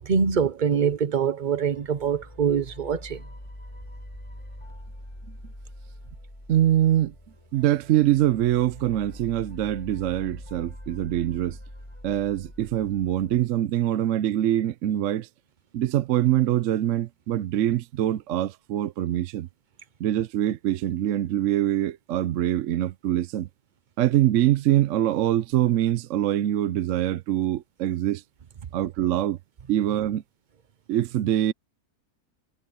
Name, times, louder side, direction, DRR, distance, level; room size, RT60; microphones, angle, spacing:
voice 1, 0.0-3.2, right 7 dB, 40° right, 0.8 m, -24 dB
sound 1, 1.7-13.4, left 1 dB, 20° left, 7.0 m, -44 dB
voice 2, 6.5-7.1 7.5-11.6 12.0-15.3 15.7-19.5 20.0-23.5 24.0-28.2 28.7-29.4 29.7-30.2 30.9-31.5, right 12 dB, 65° right, 0.9 m, -24 dB
omnidirectional pair, 1.6 m